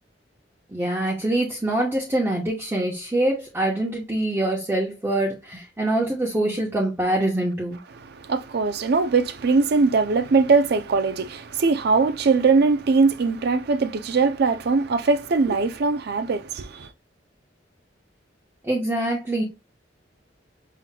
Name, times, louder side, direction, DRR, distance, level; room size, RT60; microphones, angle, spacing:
voice 1, 0.7-7.8 18.6-19.4, right 1 dB, 15° right, 0.9 m, -24 dB
voice 2, 8.1-16.9, right 4 dB, 60° right, 0.4 m, -21 dB
5.7 x 2.9 x 2.2 m
head